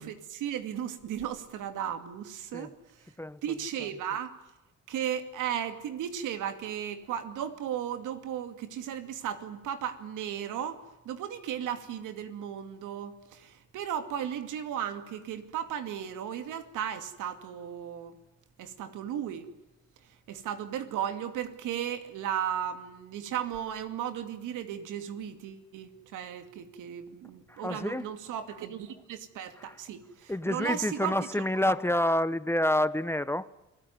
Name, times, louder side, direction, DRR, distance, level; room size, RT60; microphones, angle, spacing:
voice 1, 0.0-3.1 3.4-4.4 4.9-18.2 18.6-19.5 20.3-31.1, right 9 dB, 90° right, 2.5 m, -35 dB
voice 2, 3.2-3.9 27.5-28.1 29.6-29.8 30.3-33.5, left 1 dB, 10° left, 0.9 m, -29 dB
29.5 x 19.0 x 9.6 m
cardioid pair, 90°, 30 cm